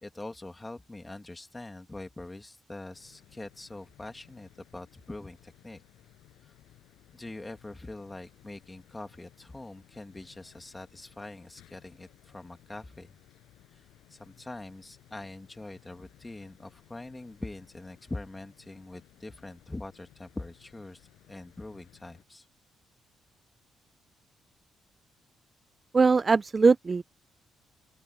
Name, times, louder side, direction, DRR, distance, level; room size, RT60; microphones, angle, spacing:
voice 1, 0.0-5.8 6.4-6.5 7.1-13.1 13.7-13.8 14.1-22.4, left 2 dB, 15° left, 2.6 m, -43 dB
sound 1, 2.9-22.2, left 15 dB, 90° left, 6.9 m, -60 dB
voice 2, 25.9-27.0, right 4 dB, 30° right, 0.5 m, -21 dB
open air
cardioid pair, 90°, 0 cm